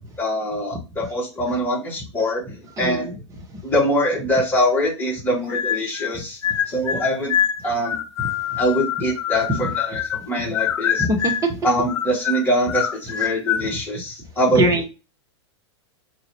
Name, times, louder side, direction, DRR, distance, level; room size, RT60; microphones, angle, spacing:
voice 1, 0.2-3.1 3.6-6.4 6.7-8.0 8.6-11.1 11.6-14.6, equal, 10° left, -5 dB, 2.3 m, -23 dB
voice 2, 2.8-3.1 11.0-11.6 14.6-14.8, right 1 dB, 20° right, 2 dB, 1.2 m, -21 dB
sound 1, 5.5-6.1 6.4-10.3 10.5-11.5 11.9-13.7, left 9 dB, 70° left, 0.5 m, -25 dB
3.9 x 3.0 x 2.9 m, 0.29 s
hypercardioid pair, 100°, 15 cm